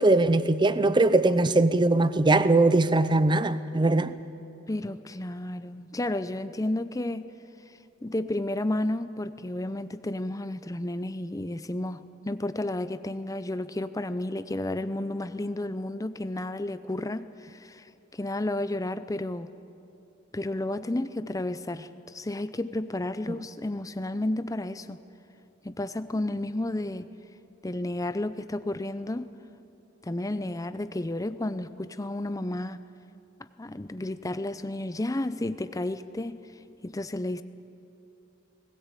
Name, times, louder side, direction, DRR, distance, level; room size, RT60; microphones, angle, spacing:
voice 1, 0.0-4.1, right 2 dB, 25° right, 0.6 m, -21 dB
voice 2, 1.2-1.5 4.7-7.3 8.0-17.8 18.1-19.5 20.3-25.0 25.6-27.1 27.6-29.3 30.0-32.8 33.6-36.4 36.8-37.4, left 1 dB, 15° left, 0.6 m, -32 dB
19.5 x 17.5 x 8.3 m
head